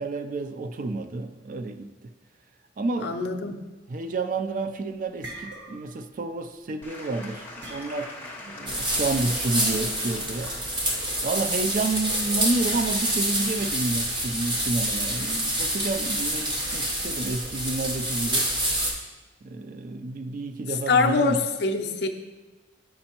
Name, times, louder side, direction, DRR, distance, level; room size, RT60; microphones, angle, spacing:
voice 1, 0.0-1.9 2.8-3.3 3.9-10.5 11.2-18.5 19.4-21.5, right 3 dB, 45° right, 8 dB, 0.3 m, -30 dB
voice 2, 3.0-3.6 20.9-22.1, left 4 dB, 60° left, 5 dB, 0.5 m, -24 dB
sound 1, 4.7-4.8 5.0-6.1 6.3-6.6 7.6-8.3, right 2 dB, 75° right, 1.2 m, -42 dB
Applause / Crowd, 6.8-13.1, left 2 dB, 10° left, 0.8 m, -43 dB
sound 2, 8.7-18.9, right 1 dB, 25° right, 0.8 m, -27 dB
7.7 x 5.3 x 2.9 m, 1.2 s
head